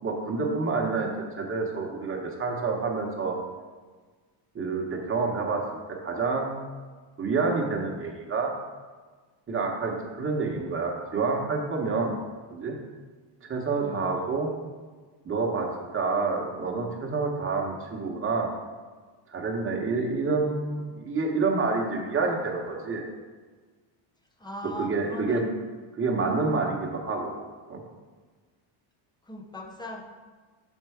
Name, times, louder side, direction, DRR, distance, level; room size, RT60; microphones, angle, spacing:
voice 1, 0.0-3.4 4.5-5.6 5.9-6.6 7.2-8.5 9.5-12.2 12.5-12.7 13.4-14.5 15.2-18.5 19.3-23.1 24.8-25.5 26.0-27.4 27.7-27.8, right 4 dB, 25° right, 0 dB, 1.0 m, -28 dB
voice 2, 13.8-14.3 24.4-25.5 29.3-30.0, equal, 10° left, 2 dB, 0.5 m, -39 dB
5.9 x 4.5 x 4.8 m, 1.4 s
cardioid pair, 145°, 50 cm